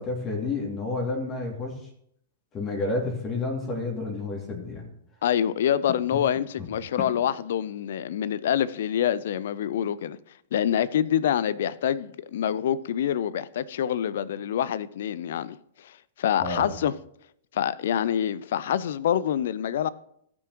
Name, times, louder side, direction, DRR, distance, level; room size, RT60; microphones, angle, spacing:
voice 1, 0.0-1.7 2.5-4.8 6.6-6.7 16.4-16.7, left 3 dB, 30° left, 2.5 m, -30 dB
voice 2, 5.2-10.2 10.5-15.6 15.8-16.9 17.5-19.9, left 9 dB, 65° left, 0.5 m, -26 dB
17.0 x 6.2 x 3.0 m
hypercardioid pair, 105°, 0 cm